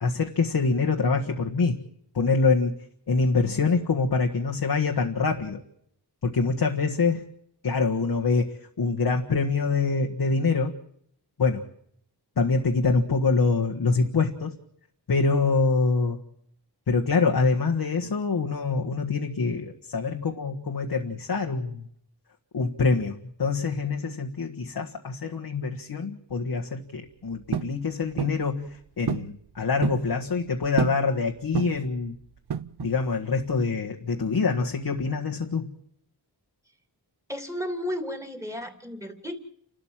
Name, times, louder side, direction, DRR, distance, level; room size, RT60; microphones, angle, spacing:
voice 1, 0.0-1.8 2.1-2.7 3.1-5.6 6.2-7.2 7.6-10.7 11.4-11.6 12.4-14.5 15.1-16.2 16.9-21.9 22.5-32.2 32.8-35.7, left 4 dB, 65° left, 1 dB, 1.6 m, -25 dB
sound 1, 27.5-27.8 28.2-28.4 29.1-29.3 29.6-30.1 30.8-31.1 31.5-31.9 32.5-33.0, right 8 dB, 70° right, 0.8 m, -29 dB
voice 2, 37.3-39.4, equal, 5° right, 5 dB, 3.0 m, -33 dB
29.5 x 13.0 x 7.4 m, 0.69 s
wide cardioid pair, 90°, 41 cm